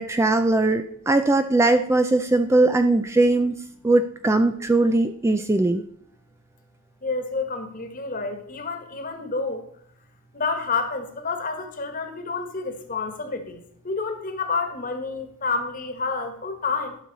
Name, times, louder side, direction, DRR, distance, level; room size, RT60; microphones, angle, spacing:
voice 1, 0.0-3.5 3.8-5.8, right 2 dB, 15° right, 9 dB, 0.3 m, -20 dB
voice 2, 7.0-9.6 10.3-17.0, left 4 dB, 40° left, 6 dB, 1.4 m, -29 dB
12.0 x 6.1 x 4.1 m, 0.67 s
head